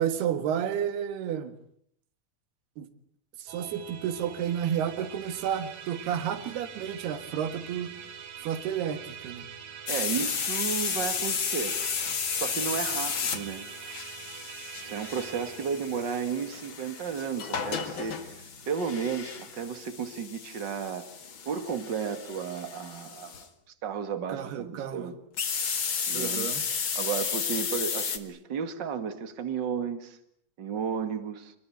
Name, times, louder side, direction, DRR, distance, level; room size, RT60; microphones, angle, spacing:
voice 1, 0.0-1.5 2.8-2.9 3.4-7.9 8.4-9.5 24.3-25.1 26.1-26.6, right 9 dB, 80° right, 3.6 m, -31 dB
Musical instrument, 3.5-19.0, right 8 dB, 60° right, 3.8 m, -45 dB
sound 1, 9.9-23.4 25.4-28.2, left 6 dB, 40° left, 1.9 m, -33 dB
voice 2, 9.9-11.8 12.3-13.7 14.8-21.1 21.5-23.4 23.8-25.2 26.1-26.5 27.0-30.2 30.6-31.5, right 6 dB, 35° right, 2.0 m, -33 dB
28.0 x 21.0 x 9.2 m
omnidirectional pair, 4.6 m